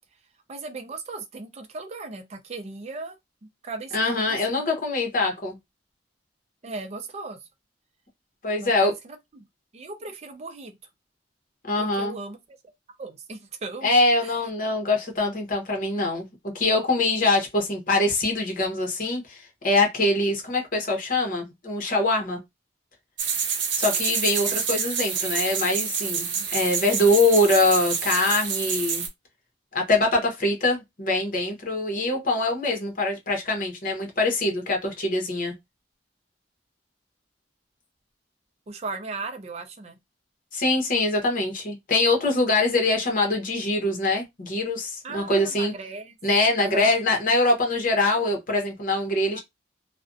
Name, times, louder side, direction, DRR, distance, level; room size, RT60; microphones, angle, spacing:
voice 1, 0.5-3.2 3.6-4.6 6.6-7.4 8.6-9.5 9.7-10.8 11.8-12.6 13.0-13.9 14.2-14.3 38.7-40.0 45.0-47.0 49.3-49.4, right 3 dB, 35° right, 0.5 m, -37 dB
voice 2, 3.9-5.6 8.4-8.9 11.6-12.2 13.8-22.4 23.8-29.0 29.7-35.5 40.5-45.7 46.2-49.4, left 2 dB, 50° left, 0.8 m, -23 dB
sound 1, 23.2-29.1, right 6 dB, 70° right, 0.7 m, -27 dB
2.4 x 2.1 x 2.5 m
head